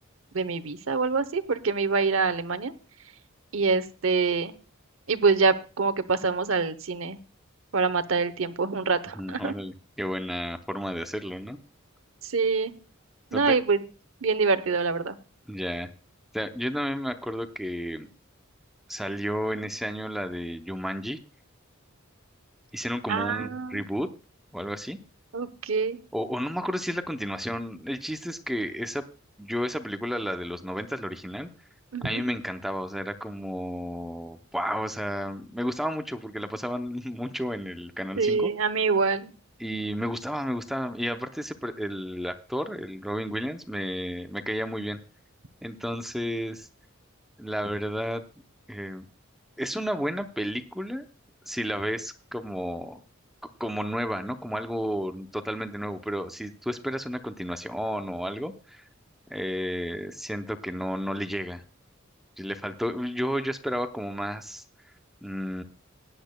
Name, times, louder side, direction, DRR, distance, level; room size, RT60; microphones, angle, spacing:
voice 1, 0.3-2.7 3.5-4.5 5.1-7.2 7.7-9.5 12.2-12.7 13.3-13.8 14.2-15.2 23.1-23.8 25.3-26.0 31.9-32.2 38.2-39.3, right 4 dB, 75° right, 12 dB, 0.8 m, -25 dB
voice 2, 9.2-11.6 13.3-13.6 15.5-15.9 16.3-18.1 18.9-21.2 22.7-24.1 24.5-25.0 26.1-29.0 29.4-31.5 32.0-38.5 39.6-45.0 45.6-46.7 47.4-48.2 48.7-49.1 49.6-51.0 51.5-53.0 53.4-58.8 59.3-61.6 62.4-64.6 65.2-65.6, equal, ahead, 7 dB, 0.6 m, -32 dB
18.0 x 10.0 x 2.2 m, 0.35 s
head